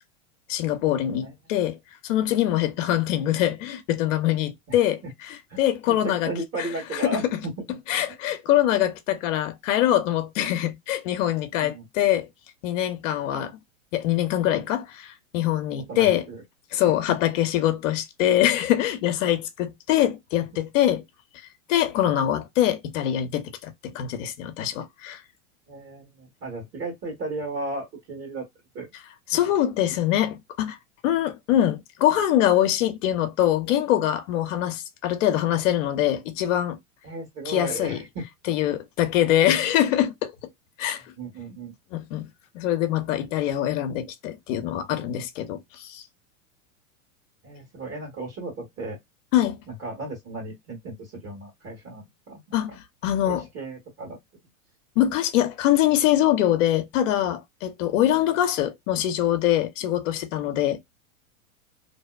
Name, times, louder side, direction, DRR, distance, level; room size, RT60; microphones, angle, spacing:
voice 1, 0.5-1.8 2.0-6.3 6.6-7.2 7.9-12.3 12.6-13.6 13.9-16.3 16.7-21.0 21.7-25.2 29.3-30.8 31.0-36.8 37.5-38.0 38.5-40.3 40.8-41.0 41.9-42.3 42.5-46.0 49.3-49.6 52.5-53.4 55.0-60.8, left 12 dB, 60° left, 0.7 m, -24 dB
voice 2, 6.2-7.8 11.6-11.9 15.9-16.4 25.7-28.5 28.7-28.9 37.0-38.2 41.2-41.7 47.4-49.0 49.7-52.8 53.2-54.2, right 2 dB, 35° right, 1.4 m, -35 dB
2.7 x 2.1 x 2.2 m
hypercardioid pair, 115°, 42 cm